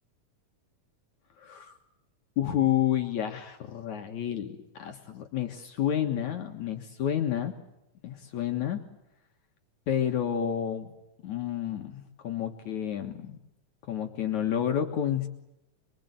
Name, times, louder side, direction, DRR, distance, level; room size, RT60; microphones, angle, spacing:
voice 1, 1.4-1.8 2.4-7.5 8.0-8.8 9.9-10.9 11.2-13.4 13.9-15.3, left 10 dB, 65° left, 4 dB, 2.8 m, -30 dB
26.0 x 24.5 x 8.3 m, 0.89 s
omnidirectional pair, 3.8 m